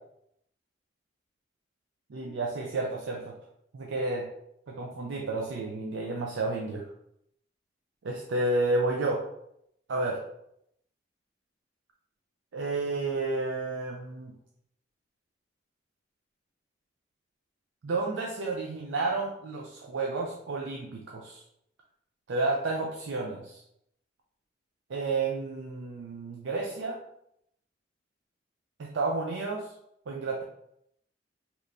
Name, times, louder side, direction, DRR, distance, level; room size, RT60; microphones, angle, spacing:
voice 1, 2.1-3.4 3.7-4.3 4.7-6.8 8.0-9.2 9.9-10.2 12.5-14.3 17.8-21.4 22.3-23.6 24.9-27.0 28.8-29.7 30.1-30.4, right 3 dB, 85° right, -1 dB, 0.4 m, -31 dB
3.3 x 2.9 x 2.5 m, 0.76 s
head